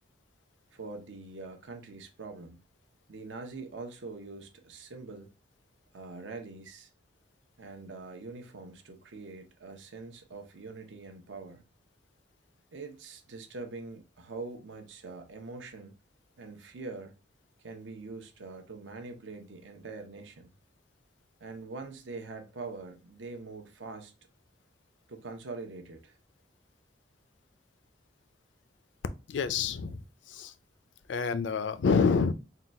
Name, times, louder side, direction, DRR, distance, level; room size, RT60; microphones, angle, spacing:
voice 1, 0.7-2.6 3.1-5.3 5.9-6.9 7.6-11.6 12.7-16.0 16.4-17.1 17.6-20.5 21.4-24.1 25.1-26.2, right 3 dB, 80° right, 0.8 m, -43 dB
voice 2, 29.3-30.5 31.1-32.3, left 5 dB, 75° left, 0.4 m, -27 dB
3.8 x 2.3 x 4.1 m
head